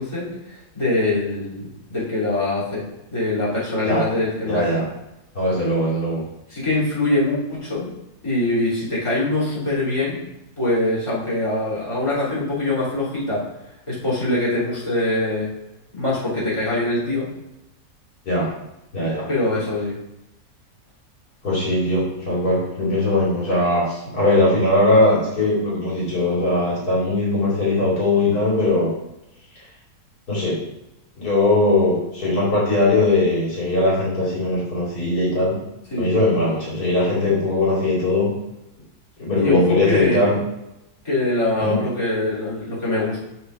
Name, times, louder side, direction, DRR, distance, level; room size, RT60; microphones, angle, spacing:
voice 1, 0.0-2.8 3.1-4.8 6.5-7.9 8.2-10.2 10.6-13.4 13.9-15.5 15.9-17.2 19.3-19.9 35.9-36.1 39.4-40.3 41.0-43.2, left 2 dB, 20° left, -9 dB, 3.2 m, -23 dB
voice 2, 4.5-4.8 5.3-6.2 18.2-18.5 18.9-19.3 21.4-28.9 30.3-30.6 31.2-35.6 36.0-38.3 39.2-40.4 41.6-41.8, left 2 dB, 75° left, -5 dB, 2.9 m, -20 dB
6.7 x 4.5 x 5.7 m, 0.91 s
omnidirectional pair, 1.7 m